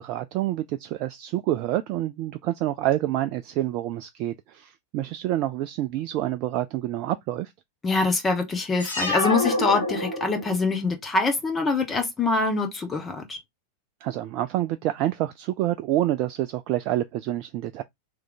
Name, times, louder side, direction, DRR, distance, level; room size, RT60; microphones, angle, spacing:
voice 1, 0.0-7.5 14.0-17.8, right 14 dB, 40° right, 0.3 m, -27 dB
voice 2, 7.8-13.4, left 3 dB, 20° left, 1.1 m, -24 dB
sound 1, 8.8-10.7, left 1 dB, 80° left, 1.8 m, -27 dB
3.3 x 3.2 x 3.8 m
figure-of-eight pair, 90°, 0 cm